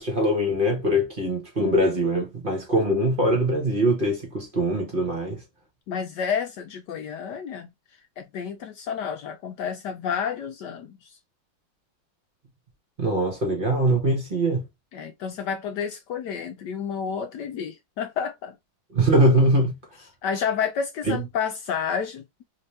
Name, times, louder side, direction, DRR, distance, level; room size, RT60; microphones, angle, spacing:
voice 1, 0.0-5.4 13.0-14.7 18.9-19.8 21.1-21.2, right 1 dB, 35° right, 0.9 m, -22 dB
voice 2, 5.9-7.7 8.2-11.1 14.9-18.6 20.2-22.4, left 7 dB, 70° left, 1.0 m, -30 dB
3.2 x 2.8 x 3.1 m
omnidirectional pair, 2.2 m